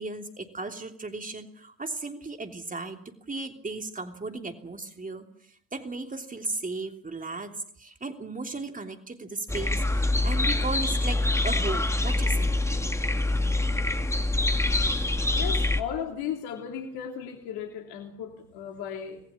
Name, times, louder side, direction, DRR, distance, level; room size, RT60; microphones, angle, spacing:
voice 1, 0.0-3.0 3.3-5.3 5.7-12.5, right 3 dB, 20° right, 5 dB, 3.2 m, -35 dB
sound 1, 9.5-15.8, left 2 dB, 5° left, 1.9 m, -25 dB
voice 2, 15.3-19.2, left 8 dB, 60° left, 4 dB, 3.2 m, -35 dB
26.5 x 20.5 x 7.3 m, 0.63 s
figure-of-eight pair, 60°, 44 cm